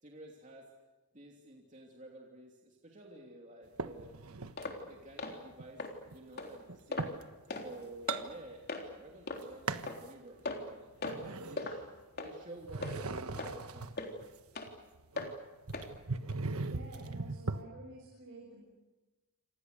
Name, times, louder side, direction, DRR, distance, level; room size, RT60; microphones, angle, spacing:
voice 1, 0.0-0.7 1.1-4.3 4.8-7.2 7.5-8.6 9.0-10.9 11.4-11.9 12.2-13.9, right 1 dB, 35° right, 0 dB, 2.9 m, -52 dB
sound 1, 3.8-4.7 5.2-7.3 7.7-8.9 9.2-10.1 10.5-12.3 12.6-17.6, right 3 dB, 85° right, 1.4 m, -39 dB
sound 2, 4.6-4.8 5.2-5.4 5.8-5.9 6.4-6.5 6.9-7.1 7.5-7.7 8.1-8.2 8.7-8.8 9.3-9.4 9.9-10.0 10.5-10.7 11.0-11.2 11.6-11.8 12.2-12.3 12.8-12.9 13.4-13.5 14.0-14.1 14.6-14.7 15.2-15.3 15.7-15.9 16.3-16.4, left 3 dB, 45° left, 3.6 m, -38 dB
voice 2, 16.7-18.6, right 2 dB, 60° right, -1 dB, 7.1 m, -51 dB
28.5 x 27.5 x 6.8 m, 1.1 s
head